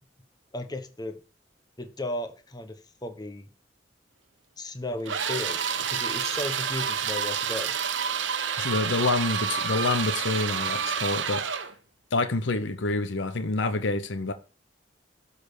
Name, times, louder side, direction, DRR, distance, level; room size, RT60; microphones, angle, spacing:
voice 1, 0.5-1.2 1.8-3.5 4.6-7.7, left 1 dB, 20° left, 1.2 m, -35 dB
sound 1, 5.1-11.7, right 7 dB, 90° right, 1.0 m, -29 dB
voice 2, 8.6-11.4 12.1-14.3, left 3 dB, 85° left, 0.8 m, -27 dB
12.5 x 4.3 x 6.9 m
head